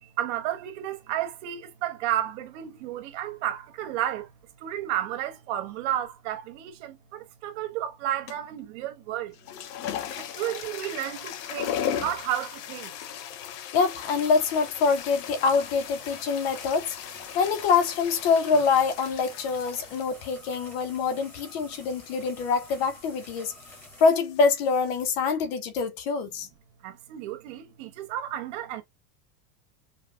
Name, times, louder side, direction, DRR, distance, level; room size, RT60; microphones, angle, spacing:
voice 1, 0.0-4.3 4.6-9.3 10.1-12.9 26.8-28.8, right 12 dB, 45° right, 0.9 m, -32 dB
sound 1, 8.3-8.6 9.3-25.1, left 9 dB, 75° left, 1.0 m, -38 dB
voice 2, 13.7-17.0 17.3-23.5 24.0-26.5, left 5 dB, 40° left, 0.5 m, -25 dB
sound 2, 14.0-24.2, equal, 5° left, 0.9 m, -49 dB
5.2 x 2.1 x 2.4 m
supercardioid pair, 170°, 47 cm